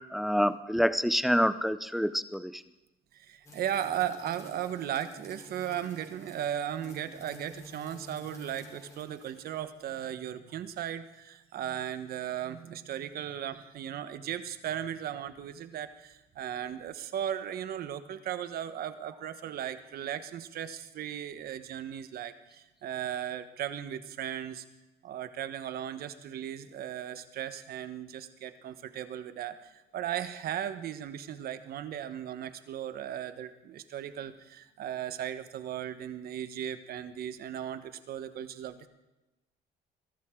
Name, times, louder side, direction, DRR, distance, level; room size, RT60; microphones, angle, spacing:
voice 1, 0.1-2.6, equal, ahead, 13 dB, 0.7 m, -27 dB
voice 2, 3.1-24.6 25.0-38.9, right 10 dB, 65° right, 11 dB, 1.3 m, -36 dB
sound 1, 3.4-9.8, left 2 dB, 15° left, 3.4 m, -51 dB
22.5 x 13.5 x 3.8 m, 1.0 s
cardioid pair, 110°, 17 cm